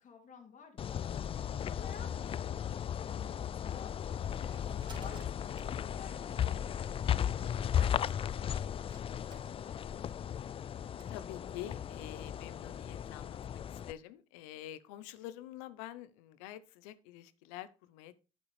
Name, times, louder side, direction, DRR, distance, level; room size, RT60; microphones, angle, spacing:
voice 1, 0.0-10.2, left 6 dB, 50° left, 2 dB, 2.2 m, -54 dB
sound 1, 0.8-13.9, left 9 dB, 35° left, 0.3 m, -36 dB
sound 2, 4.3-11.1, right 1 dB, 25° right, 3.4 m, -58 dB
voice 2, 11.1-18.2, left 13 dB, 90° left, 15 dB, 0.7 m, -47 dB
8.8 x 8.4 x 3.2 m, 0.31 s
supercardioid pair, 80°, 17 cm